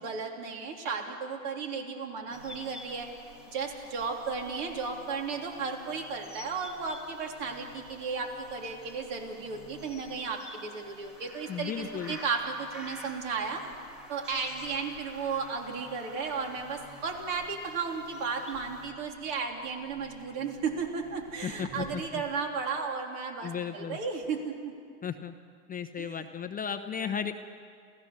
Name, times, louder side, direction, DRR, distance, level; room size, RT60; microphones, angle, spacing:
voice 1, 0.0-3.1 3.5-13.6 14.1-24.7 26.0-26.2, right 5 dB, 60° right, 2 dB, 3.6 m, -34 dB
sound 1, 2.3-18.8, left 1 dB, ahead, 2.2 m, -50 dB
Buzz, 2.3-22.1, right 2 dB, 85° right, 4.2 m, -54 dB
voice 2, 11.5-12.2 21.4-22.2 23.4-24.0 25.0-25.3 25.7-27.3, left 7 dB, 20° left, 8 dB, 0.8 m, -35 dB
28.0 x 16.0 x 6.9 m, 2.2 s
hypercardioid pair, 100°, 43 cm